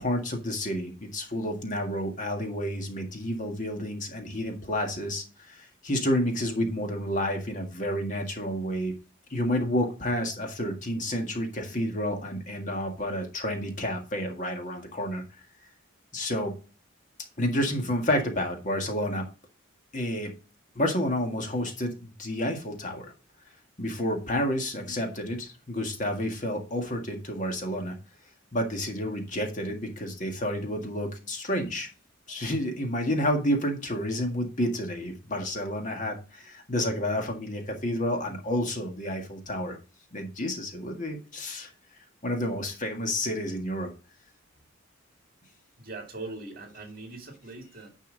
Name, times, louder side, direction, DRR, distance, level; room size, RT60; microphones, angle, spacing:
voice 1, 0.0-9.0 9.3-15.2 16.1-16.5 17.4-19.3 19.9-20.3 20.8-23.1 23.8-28.0 28.5-31.9 32.3-39.8 40.1-41.7 42.2-43.9, equal, 40° left, 1.9 m, -30 dB
voice 2, 45.8-47.9, right 2 dB, 45° right, 2.2 m, -41 dB
9.9 x 5.5 x 4.0 m
head